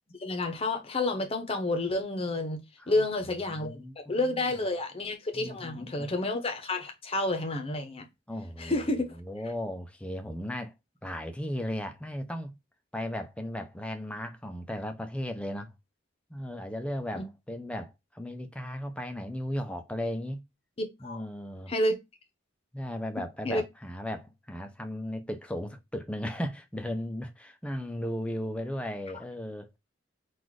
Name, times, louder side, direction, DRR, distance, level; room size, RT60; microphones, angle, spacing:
voice 1, 0.2-2.6 2.9-8.0 8.6-9.2 17.2-17.3 20.8-21.2 21.7-21.9 23.4-23.6, left 2 dB, 30° left, 0.8 m, -30 dB
voice 2, 3.5-4.4 5.3-6.1 8.3-8.9 9.2-10.7 11.0-12.6 12.9-15.7 16.3-20.4 21.0-21.7 22.7-29.8, left 1 dB, 5° left, 0.5 m, -36 dB
4.0 x 2.5 x 4.6 m
head